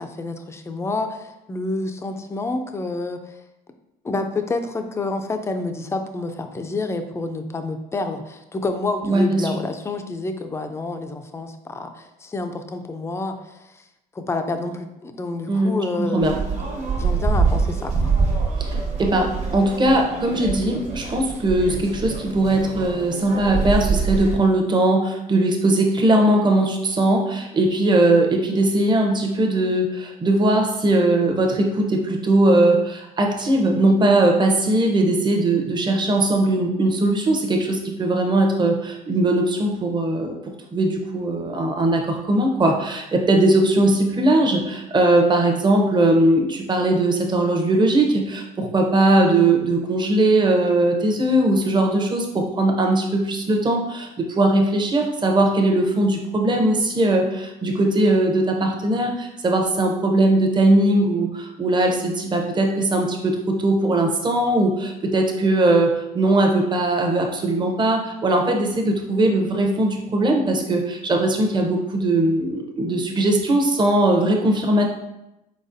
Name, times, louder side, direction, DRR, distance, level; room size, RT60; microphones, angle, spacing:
voice 1, 0.0-3.4 4.0-13.8 14.1-16.4 17.0-18.1, left 3 dB, 15° left, 6 dB, 0.4 m, -28 dB
voice 2, 9.1-9.5 15.5-16.3 18.6-40.3 40.7-74.9, right 1 dB, 25° right, 2 dB, 0.7 m, -20 dB
sound 1, 16.2-24.4, right 4 dB, 45° right, 1.0 m, -24 dB
4.2 x 4.0 x 2.6 m, 0.91 s
cardioid pair, 110°, 17 cm